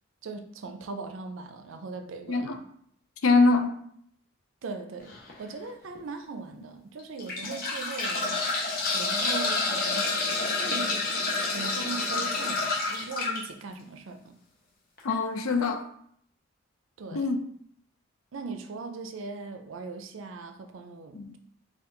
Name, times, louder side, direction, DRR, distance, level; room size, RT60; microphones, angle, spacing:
voice 1, 0.2-2.6 4.6-5.1 5.4-8.5 8.9-10.1 10.5-10.9 11.5-14.4 17.0-17.3 18.3-21.4, right 4 dB, 70° right, 7 dB, 0.5 m, -39 dB
voice 2, 2.3-2.6 3.2-3.8 15.0-15.8 17.1-17.4 21.1-21.3, left 3 dB, 85° left, 7 dB, 0.5 m, -23 dB
sound 1, 5.1-5.3 6.0-6.1 7.0-13.4 15.0-15.1 15.4-15.5, left 3 dB, 45° left, 0.9 m, -28 dB
4.4 x 2.3 x 3.8 m, 0.65 s
head